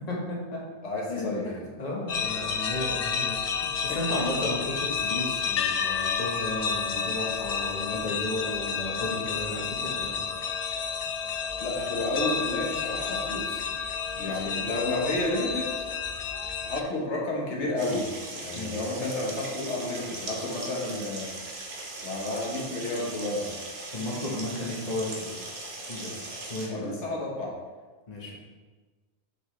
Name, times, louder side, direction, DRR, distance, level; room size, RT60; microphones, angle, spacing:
voice 1, 0.1-0.6 1.1-1.5 1.8-3.4 3.8-10.3 14.1-14.8 18.5-18.8 23.9-25.5 25.9-26.1 26.5-27.0 28.1-28.3, left 1 dB, 35° left, -3 dB, 1.3 m, -34 dB
voice 2, 0.8-1.5 3.9-4.2 11.6-13.7 14.2-15.7 16.6-21.3 22.0-23.6 26.7-27.5, left 2 dB, 80° left, -2 dB, 1.5 m, -31 dB
sound 1, 2.1-16.8, left 6 dB, 65° left, 0.3 m, -30 dB
sound 2, 17.8-26.7, right 2 dB, 65° right, 1.2 m, -39 dB
6.2 x 6.1 x 3.2 m, 1.3 s
omnidirectional pair, 1.2 m